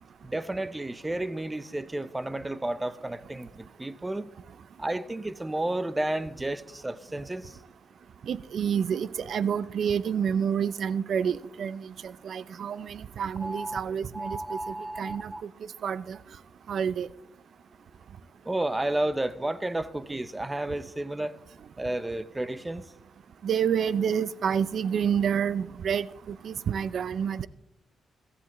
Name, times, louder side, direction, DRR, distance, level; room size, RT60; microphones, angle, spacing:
voice 1, 0.2-4.3 4.8-7.5 13.4-13.8 14.1-15.4 18.5-21.4 21.8-22.8, right 1 dB, 15° right, 0.6 m, -32 dB
voice 2, 8.3-14.4 15.0-15.3 15.8-16.2 16.7-17.1 23.4-27.5, right 7 dB, 65° right, 0.4 m, -28 dB
16.0 x 13.5 x 3.0 m
cardioid pair, 100°, 0 cm